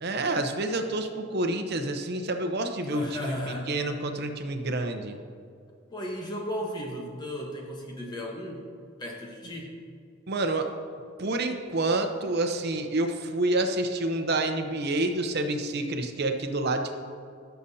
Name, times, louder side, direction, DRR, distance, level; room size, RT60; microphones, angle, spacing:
voice 1, 0.0-3.4 3.7-5.2 10.3-10.7 11.2-17.0, right 2 dB, 55° right, 6 dB, 0.8 m, -28 dB
voice 2, 2.8-3.7 5.9-8.7 9.0-9.7, equal, 20° left, -1 dB, 1.2 m, -35 dB
17.5 x 6.9 x 2.8 m, 2.3 s
head